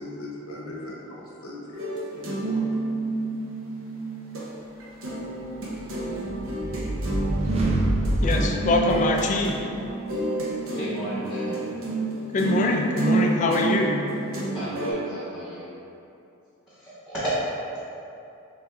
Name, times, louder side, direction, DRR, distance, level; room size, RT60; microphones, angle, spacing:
voice 1, 0.0-2.7, left 1 dB, 70° left, -4 dB, 0.8 m, -39 dB
sound 1, 1.7-4.5 4.8-14.9, right 3 dB, 65° right, 0.7 m, -29 dB
sound 2, 5.8-9.6, right 1 dB, 30° right, 0.5 m, -27 dB
voice 2, 8.2-9.6 12.3-14.0, left 2 dB, 35° left, 1 dB, 0.3 m, -23 dB
voice 3, 10.7-11.7 14.5-15.7 16.7-17.3, right 1 dB, ahead, -13 dB, 1.1 m, -33 dB
3.5 x 3.3 x 3.3 m, 2.7 s
head